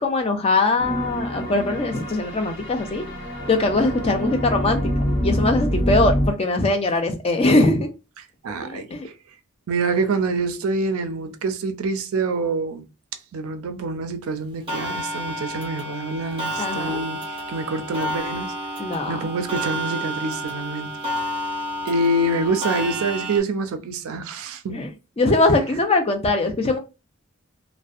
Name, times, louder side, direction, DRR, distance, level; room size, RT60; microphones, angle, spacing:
voice 1, 0.0-3.0 3.5-4.9 5.2-7.9 8.6-9.1 16.6-17.0 18.8-19.2 24.7-26.8, left 2 dB, 25° left, 0.4 m, -21 dB
sound 1, 0.8-6.3, equal, 55° left, 0.7 m, -26 dB
voice 2, 8.4-8.9 9.7-12.9 13.3-18.5 19.1-20.9 21.8-24.8, right 2 dB, 80° right, 0.4 m, -26 dB
Clock, 14.7-23.4, equal, 25° right, 0.6 m, -30 dB
2.5 x 2.1 x 2.3 m
head